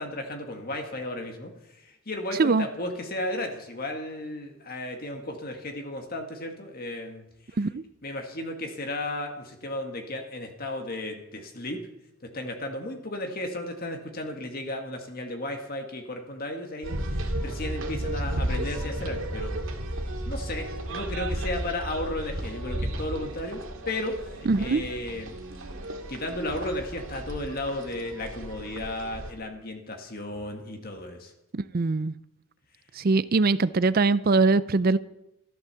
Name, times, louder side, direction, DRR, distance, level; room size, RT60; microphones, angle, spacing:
voice 1, 0.0-7.2 8.0-11.8 12.3-19.7 20.2-25.3 26.1-31.3, left 1 dB, 40° left, 3 dB, 1.8 m, -34 dB
sound 1, 16.8-29.3, right 1 dB, 60° right, 2.3 m, -33 dB
voice 2, 24.5-24.8 31.5-32.1 33.0-35.0, right 3 dB, 40° right, 16 dB, 0.4 m, -22 dB
14.0 x 12.0 x 6.9 m, 0.85 s
head